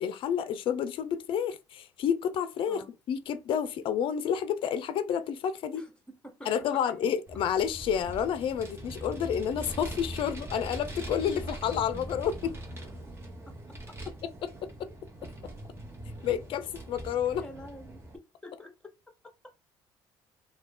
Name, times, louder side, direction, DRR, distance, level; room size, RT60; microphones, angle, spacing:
voice 1, 0.0-2.8 3.1-5.8 6.5-12.6 14.2-14.9 16.2-17.4, left 8 dB, 60° left, 0.4 m, -30 dB
voice 2, 6.2-7.1 17.3-18.0 18.4-18.9, left 1 dB, 10° left, 1.0 m, -47 dB
Vehicle, 7.3-18.2, right 1 dB, 25° right, 1.0 m, -42 dB
2.3 x 2.2 x 3.7 m
supercardioid pair, 75°, 10 cm